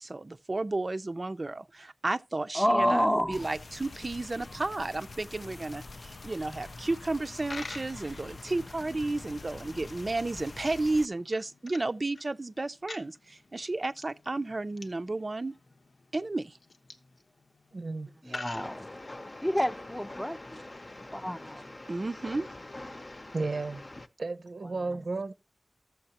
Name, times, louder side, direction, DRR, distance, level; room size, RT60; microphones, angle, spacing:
voice 1, 0.0-15.5 16.1-16.6 21.9-22.5, right 2 dB, 50° right, 0.4 m, -32 dB
voice 2, 2.5-3.5 18.2-18.9 19.4-20.6 21.1-21.6, equal, 10° left, 0.6 m, -28 dB
sound 1, 3.3-11.1, left 3 dB, 70° left, 0.4 m, -45 dB
Coin (dropping), 7.2-19.5, left 3 dB, 90° left, 0.9 m, -48 dB
voice 3, 17.7-18.4 23.3-23.8 24.2-25.3, right 3 dB, 85° right, 0.7 m, -34 dB
Train, 18.5-24.1, left 2 dB, 45° left, 0.7 m, -44 dB
13.5 x 7.2 x 2.9 m
wide cardioid pair, 75°, 0 cm